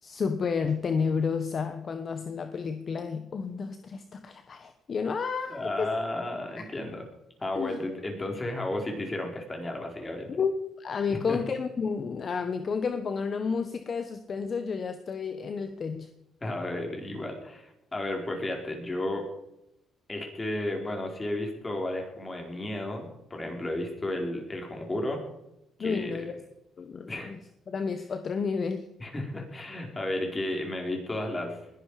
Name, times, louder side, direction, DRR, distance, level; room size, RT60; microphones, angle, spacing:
voice 1, 0.0-5.9 7.5-7.8 10.4-16.1 25.8-26.3 26.8-27.4 27.7-28.9, left 5 dB, 45° left, 8 dB, 1.2 m, -31 dB
voice 2, 5.5-7.0 7.4-10.3 11.1-11.4 16.4-19.2 20.1-25.2 25.8-26.3 27.1-27.3 29.0-31.6, left 1 dB, 20° left, 2 dB, 4.6 m, -33 dB
20.5 x 11.5 x 5.0 m, 0.86 s
cardioid pair, 100°, 0 cm